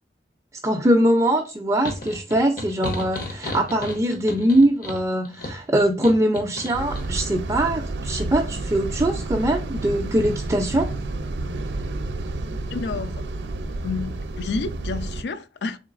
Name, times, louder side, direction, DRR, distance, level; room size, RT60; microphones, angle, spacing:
voice 1, 0.6-10.9, right 1 dB, 20° right, 0.4 m, -22 dB
sound 1, 1.8-7.1, left 2 dB, 55° left, 0.8 m, -34 dB
sound 2, 6.7-15.2, right 2 dB, 80° right, 0.5 m, -30 dB
voice 2, 12.7-13.3 13.8-15.8, left 4 dB, 70° left, 0.4 m, -30 dB
3.8 x 3.2 x 2.4 m
head